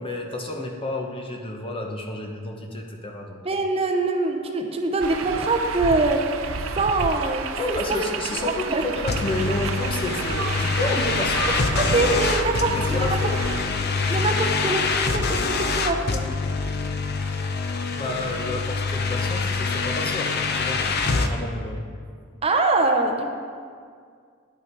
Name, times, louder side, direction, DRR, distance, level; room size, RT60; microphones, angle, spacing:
voice 1, 0.0-3.4 7.6-12.1 12.8-13.3 18.0-21.0 21.3-21.8, left 1 dB, 25° left, 2 dB, 0.9 m, -30 dB
voice 2, 3.4-6.2 6.8-7.5 7.9-8.1 8.4-8.8 11.5-11.6 11.9-13.2 14.1-15.3 15.7-16.2 22.4-23.3, right 2 dB, 30° right, 3 dB, 0.7 m, -23 dB
sound 1, 5.0-13.6, right 5 dB, 80° right, 0.5 m, -31 dB
sound 2, 9.1-21.3, left 4 dB, 50° left, 0.7 m, -25 dB
9.9 x 8.7 x 4.6 m, 2.1 s
head